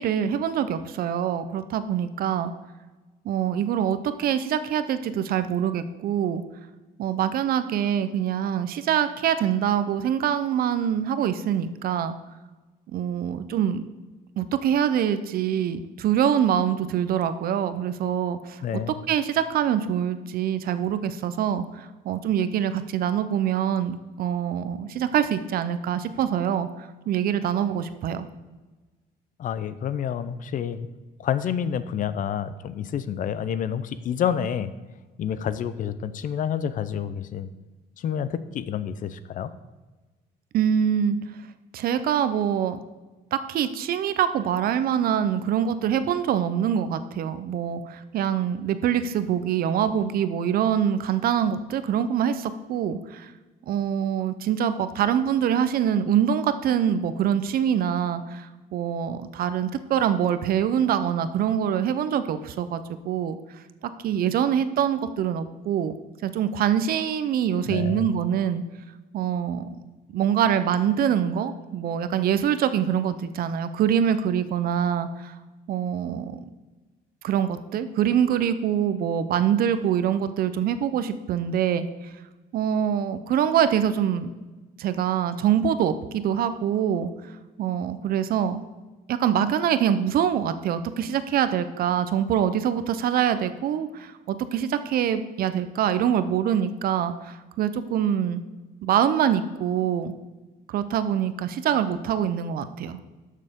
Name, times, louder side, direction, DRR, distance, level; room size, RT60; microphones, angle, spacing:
voice 1, 0.0-2.5 3.2-6.4 7.0-12.2 12.9-13.8 14.4-18.6 19.1-26.7 27.1-28.3 40.5-41.2 41.7-42.8 43.3-53.3 53.7-63.4 64.0-65.9 66.2-68.6 69.1-69.7 70.1-75.3 75.7-76.5 77.2-81.9 82.5-84.3 84.8-87.1 87.6-88.6 89.1-98.4 98.8-100.1 100.7-103.0, right 9 dB, 60° right, 12 dB, 0.7 m, -24 dB
voice 2, 18.6-18.9 29.4-30.9 31.2-34.7 35.2-37.5 38.0-39.5 67.7-68.1, left 8 dB, 50° left, 14 dB, 0.6 m, -28 dB
12.0 x 6.6 x 3.7 m, 1.2 s
cardioid pair, 110°, 17 cm